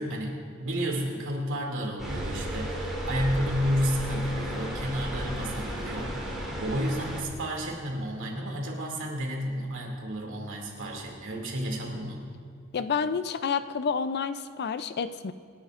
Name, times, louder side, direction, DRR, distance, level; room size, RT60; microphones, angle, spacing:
voice 1, 0.0-6.3 6.6-12.2, equal, 60° right, 0 dB, 2.5 m, -31 dB
sound 1, 2.0-7.2, equal, ahead, 3.6 m, -34 dB
voice 2, 12.7-15.3, left 6 dB, 50° left, 12 dB, 0.5 m, -29 dB
27.0 x 11.0 x 2.5 m, 2.2 s
head